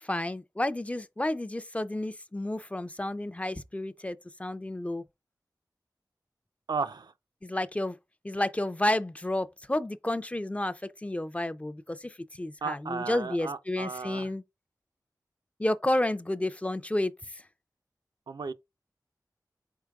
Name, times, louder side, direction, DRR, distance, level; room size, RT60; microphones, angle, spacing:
voice 1, 0.0-5.0 7.4-8.0 8.2-10.7 11.0-14.4 15.6-17.1, left 1 dB, 20° left, 0.4 m, -31 dB
voice 2, 6.7-7.1 12.6-14.3 18.3-18.5, right 5 dB, 85° right, 0.4 m, -34 dB
4.6 x 4.4 x 2.3 m
wide cardioid pair, 65°, 7 cm